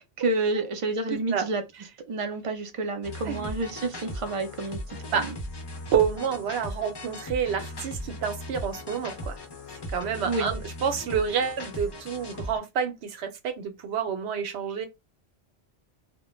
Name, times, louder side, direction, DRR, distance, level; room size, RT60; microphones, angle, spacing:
voice 1, 0.2-1.6 2.1-4.8 5.1-5.3 10.2-10.5, right 2 dB, 45° right, 0.4 m, -29 dB
voice 2, 1.1-1.5 3.2-3.5 5.1-5.3 5.9-9.4 9.9-14.9, right 7 dB, 80° right, 0.9 m, -28 dB
sound 1, 3.0-12.6, left 1 dB, 35° left, 0.4 m, -38 dB
2.1 x 2.1 x 3.0 m
omnidirectional pair, 1.1 m